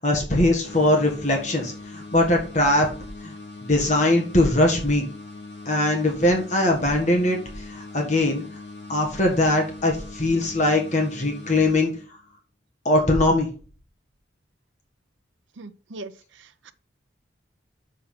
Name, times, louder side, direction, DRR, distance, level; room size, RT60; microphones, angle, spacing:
voice 1, 0.0-2.9 3.2-3.3 3.6-5.1 5.7-8.4 8.9-11.9 12.9-13.5, left 1 dB, 40° left, 1.7 m, -21 dB
sound 1, 0.6-12.4, left 3 dB, 65° left, 3.5 m, -41 dB
voice 2, 15.6-16.7, right 2 dB, 75° right, 0.7 m, -41 dB
6.3 x 5.6 x 5.8 m
head